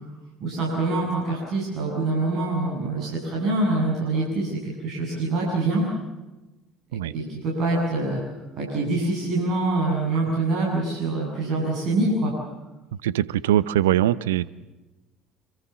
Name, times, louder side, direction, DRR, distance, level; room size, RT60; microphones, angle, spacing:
voice 1, 0.4-5.8 7.1-8.2 8.6-12.3, right 2 dB, 50° right, -3 dB, 7.7 m, -25 dB
voice 2, 13.0-14.5, right 12 dB, 70° right, 19 dB, 0.8 m, -22 dB
27.0 x 25.5 x 7.2 m, 1.1 s
figure-of-eight pair, 60°, 0 cm